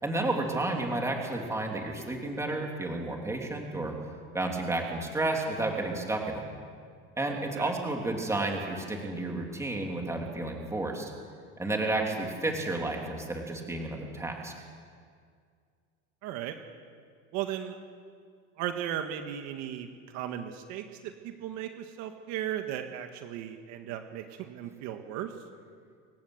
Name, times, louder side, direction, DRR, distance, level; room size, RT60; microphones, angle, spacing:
voice 1, 0.0-3.9 4.3-6.4 7.2-11.1 11.6-14.5, right 2 dB, 10° right, 1 dB, 3.3 m, -31 dB
voice 2, 16.2-16.6 17.3-17.8 18.6-25.3, right 10 dB, 60° right, 6 dB, 1.8 m, -36 dB
28.0 x 16.0 x 8.1 m, 2.1 s
cardioid pair, 145°, 31 cm